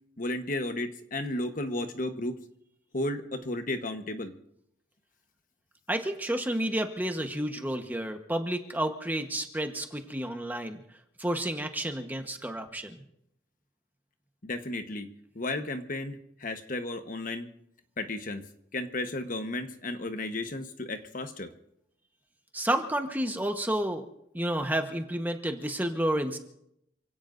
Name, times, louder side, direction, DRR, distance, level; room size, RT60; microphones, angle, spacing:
voice 1, 0.2-2.4 2.9-4.3 14.4-15.1 15.3-16.1 16.4-17.5 18.0-18.4 18.7-21.5, left 2 dB, 45° left, 6 dB, 1.2 m, -33 dB
voice 2, 5.9-10.8 11.2-13.0 22.5-24.1 24.3-26.4, right 1 dB, 10° right, 5 dB, 1.1 m, -30 dB
28.0 x 17.0 x 2.6 m, 0.77 s
head